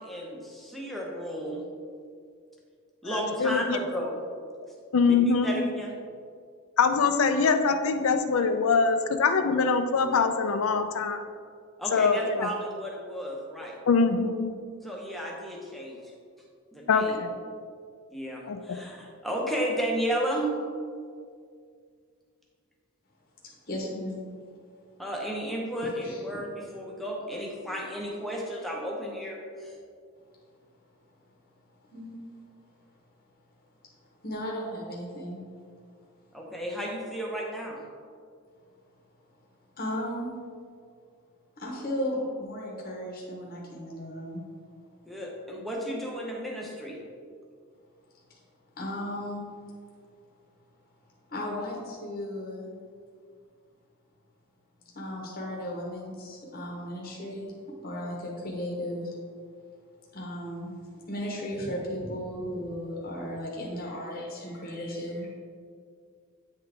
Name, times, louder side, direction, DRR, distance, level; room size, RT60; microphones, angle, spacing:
voice 1, 0.0-1.7 3.0-4.2 5.2-5.9 11.8-13.8 14.8-16.1 16.7-17.1 18.1-20.5 25.0-29.8 36.3-37.8 45.1-47.0, equal, ahead, -2 dB, 0.8 m, -33 dB
voice 2, 3.0-3.8 4.9-5.6 6.8-11.2 11.9-12.5 13.9-14.5 16.9-17.3 18.5-18.6, left 5 dB, 75° left, 8 dB, 0.5 m, -23 dB
voice 3, 23.4-24.2 25.8-26.2 31.9-32.2 34.0-35.4 39.8-40.3 41.6-44.4 48.3-48.4 48.8-49.5 51.3-52.7 54.9-59.1 60.1-60.8 61.1-65.3, equal, 40° left, -3 dB, 0.9 m, -35 dB
9.0 x 3.8 x 3.4 m, 2.2 s
head